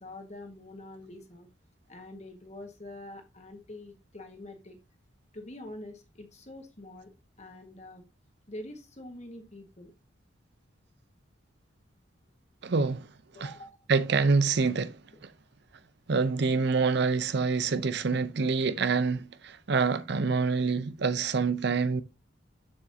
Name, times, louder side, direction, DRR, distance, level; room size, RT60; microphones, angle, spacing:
voice 1, 0.0-1.5 1.9-4.8 5.3-7.1 7.4-8.0 8.5-9.9 13.3-13.8, left 1 dB, 35° left, 1.5 m, -45 dB
voice 2, 12.6-13.1 13.4-13.5 13.9-15.0 16.1-22.0, right 4 dB, 55° right, 0.6 m, -26 dB
7.3 x 7.2 x 2.7 m
head